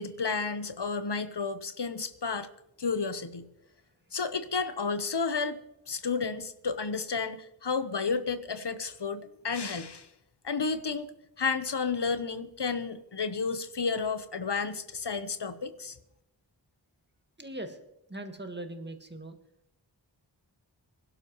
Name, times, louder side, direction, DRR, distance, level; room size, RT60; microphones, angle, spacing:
voice 1, 0.0-2.5 2.8-3.5 4.1-10.1 10.4-11.1 11.4-16.0, left 5 dB, 65° left, 10 dB, 1.0 m, -32 dB
voice 2, 17.4-17.8 18.1-19.4, right 1 dB, 25° right, 5 dB, 1.8 m, -40 dB
22.5 x 12.0 x 3.1 m, 0.81 s
wide cardioid pair, 45°, 45 cm